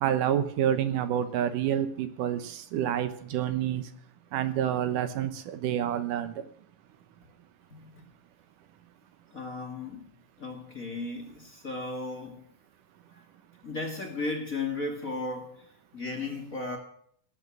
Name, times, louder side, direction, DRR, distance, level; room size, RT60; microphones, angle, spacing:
voice 1, 0.0-3.8 4.3-6.3, right 10 dB, 85° right, 10 dB, 2.6 m, -28 dB
voice 2, 7.7-8.0 9.3-10.1 10.4-12.5 13.1-13.2 13.6-16.8, left 3 dB, 30° left, 3 dB, 1.9 m, -35 dB
17.0 x 8.1 x 7.6 m, 0.65 s
omnidirectional pair, 3.7 m